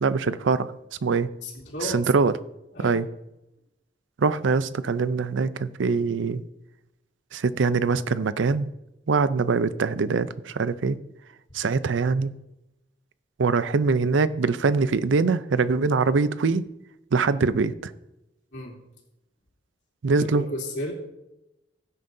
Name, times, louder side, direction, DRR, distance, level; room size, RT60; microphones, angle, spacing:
voice 1, 0.0-0.7 1.0-1.3 1.8-2.3 2.8-3.1 4.2-6.4 7.3-8.7 9.1-11.0 11.5-12.3 13.4-16.6 17.1-17.9 20.0-20.5, right 4 dB, 90° right, 15 dB, 0.5 m, -23 dB
voice 2, 1.4-2.0 2.7-3.0 18.5-18.8 20.2-20.9, left 1 dB, 70° left, -2 dB, 2.9 m, -33 dB
15.5 x 9.1 x 2.7 m, 0.90 s
head